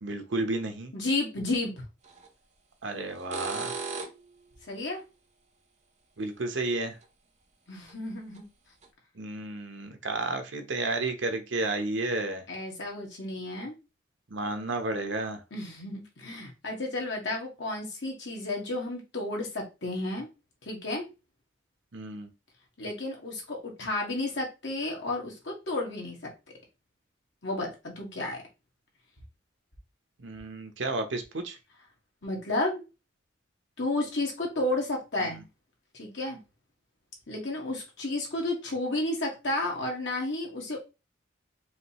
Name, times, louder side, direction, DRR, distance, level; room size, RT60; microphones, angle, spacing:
voice 1, 0.0-0.9 2.8-3.8 6.2-7.0 9.2-12.4 14.3-15.4 21.9-22.3 30.2-31.6 35.2-35.3, right 2 dB, 75° right, 0.9 m, -32 dB
voice 2, 0.9-1.8 4.7-5.0 7.7-8.4 12.5-13.7 15.5-20.3 20.6-21.1 22.8-26.2 27.4-28.4 32.2-32.8 33.8-35.4 35.9-36.4 37.3-40.8, left 2 dB, 65° left, 1.7 m, -32 dB
sound 1, 2.1-2.3 3.1-4.3 7.0-7.1 7.9-8.0 8.4-8.5 8.8-8.9, right 4 dB, 35° right, 0.7 m, -36 dB
5.0 x 3.1 x 2.9 m
head